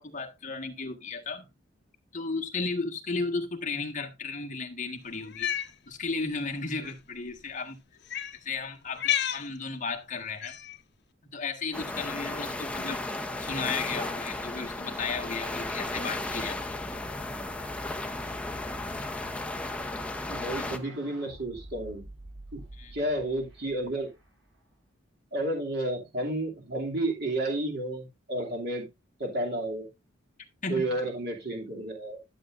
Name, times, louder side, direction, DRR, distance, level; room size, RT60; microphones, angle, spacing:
voice 1, 0.0-1.5 2.1-5.5 5.9-7.8 8.4-10.6 11.3-13.0 13.4-16.8 20.6-20.7 22.7-22.9 30.6-30.9, left 4 dB, 40° left, 1.5 m, -34 dB
Cat, 5.2-5.7 6.8-6.9 8.1-8.4 8.9-9.5 10.4-10.8, left 11 dB, 60° left, 0.9 m, -30 dB
sound 1, 11.7-20.8, left 2 dB, 5° left, 0.8 m, -34 dB
sound 2, 19.9-24.7, right 1 dB, 75° right, 7.0 m, -49 dB
voice 2, 20.3-22.0 22.5-22.6 22.9-24.1 25.3-28.9 29.2-29.9 30.7-32.2, right 1 dB, 55° right, 2.7 m, -31 dB
12.5 x 7.7 x 2.6 m
head